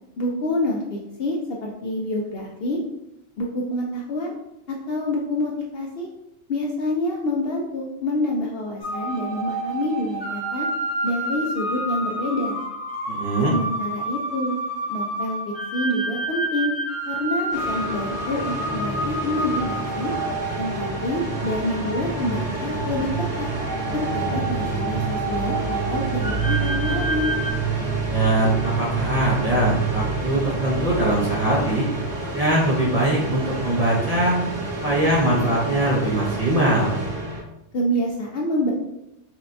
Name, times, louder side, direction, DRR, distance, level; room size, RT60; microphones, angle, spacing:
voice 1, 0.2-2.8 3.4-4.4 4.7-6.1 6.5-10.7 11.0-12.6 13.5-14.5 14.9-15.4 15.7-16.7 17.1-20.1 20.6-23.1 23.4-23.5 23.9-27.3 37.7-38.7, left 1 dB, 60° left, -1 dB, 0.6 m, -27 dB
sound 1, 8.8-27.5, right 2 dB, 20° left, 0.8 m, -30 dB
voice 2, 13.1-13.5 28.1-31.9 32.3-34.4 34.8-36.9, right 1 dB, 40° right, -5 dB, 0.6 m, -22 dB
sound 2, 17.5-37.4, right 1 dB, 75° right, 1.4 m, -30 dB
sound 3, 19.3-32.1, right 7 dB, 55° right, 1.0 m, -30 dB
5.7 x 2.2 x 2.6 m, 0.87 s
omnidirectional pair, 1.3 m